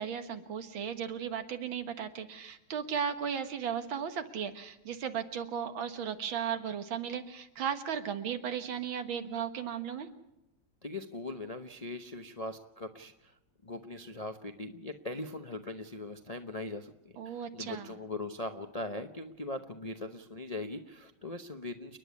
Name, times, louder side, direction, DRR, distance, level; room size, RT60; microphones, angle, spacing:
voice 1, 0.0-10.1 17.2-17.9, right 8 dB, 80° right, 8 dB, 2.2 m, -36 dB
voice 2, 10.8-13.3 13.6-16.9 17.2-22.0, left 2 dB, 40° left, 6 dB, 0.5 m, -40 dB
29.5 x 10.5 x 9.5 m, 0.90 s
omnidirectional pair, 2.1 m